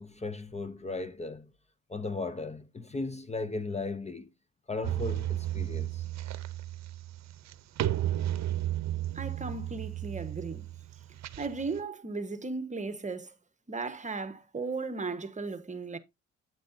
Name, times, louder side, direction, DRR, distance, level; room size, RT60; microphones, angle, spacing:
voice 1, 0.0-1.5 1.9-4.3 4.7-6.0, left 3 dB, 20° left, 0.8 m, -36 dB
sound 1, 4.8-11.8, right 13 dB, 60° right, 0.8 m, -33 dB
voice 2, 9.1-10.7 11.4-13.3 13.7-16.0, right 4 dB, 25° right, 1.2 m, -36 dB
9.0 x 8.0 x 2.7 m
cardioid pair, 90°, 30 cm